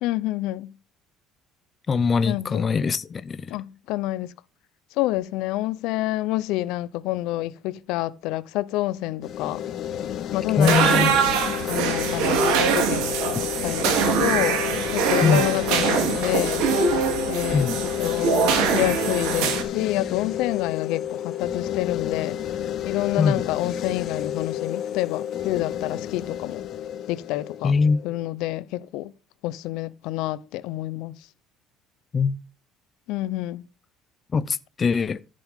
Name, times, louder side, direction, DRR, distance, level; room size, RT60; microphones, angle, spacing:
voice 1, 0.0-0.7 2.2-2.6 3.5-4.3 5.0-9.6 10.3-11.0 11.6-14.6 14.9-16.7 17.3-17.7 18.0-22.4 22.8-26.6 27.1-27.7 28.0-29.1 29.4-31.1 33.1-33.7, left 16 dB, 75° left, 0.8 m, -28 dB
voice 2, 1.9-3.5 10.6-11.1 15.2-15.4 17.5-17.8 23.2-23.4 27.6-28.0 32.1-32.4 34.3-35.2, left 5 dB, 25° left, 0.6 m, -22 dB
sound 1, 9.2-28.3, left 11 dB, 45° left, 1.6 m, -30 dB
sound 2, 10.6-19.6, right 6 dB, 80° right, 2.9 m, -23 dB
14.0 x 7.8 x 3.7 m
cardioid pair, 150°, 0 cm